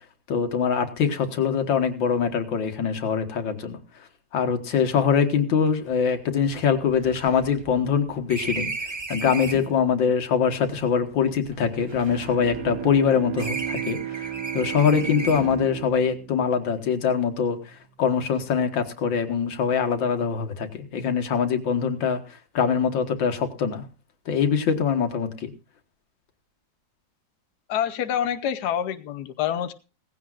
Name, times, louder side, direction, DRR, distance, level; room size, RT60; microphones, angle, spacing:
voice 1, 0.3-3.8 4.3-8.7 9.1-23.8 24.3-25.5, left 6 dB, 90° left, 6 dB, 2.1 m, -23 dB
sound 1, 5.7-5.8 6.0-6.1 6.5-9.8 10.6-13.0 13.4-15.7, right 3 dB, 30° right, 0.4 m, -36 dB
Bowed string instrument, 12.0-17.5, right 12 dB, 65° right, 1.3 m, -34 dB
voice 2, 27.7-29.7, left 9 dB, 65° left, 9 dB, 1.3 m, -26 dB
17.5 x 15.5 x 2.5 m, 0.30 s
omnidirectional pair, 2.0 m